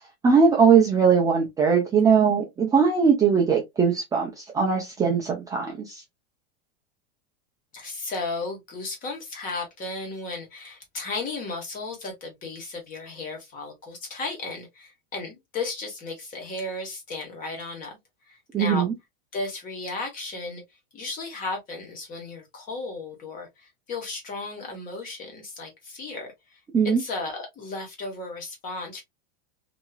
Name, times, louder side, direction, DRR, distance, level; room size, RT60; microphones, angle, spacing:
voice 1, 0.2-6.0 18.5-18.9 26.7-27.0, right 6 dB, 10° right, 0.6 m, -20 dB
voice 2, 7.7-18.0 18.3-18.9 19.3-20.6 20.9-26.6 26.8-29.0, left 3 dB, 25° left, 1.3 m, -34 dB
2.9 x 2.8 x 2.3 m
supercardioid pair, 150°, 31 cm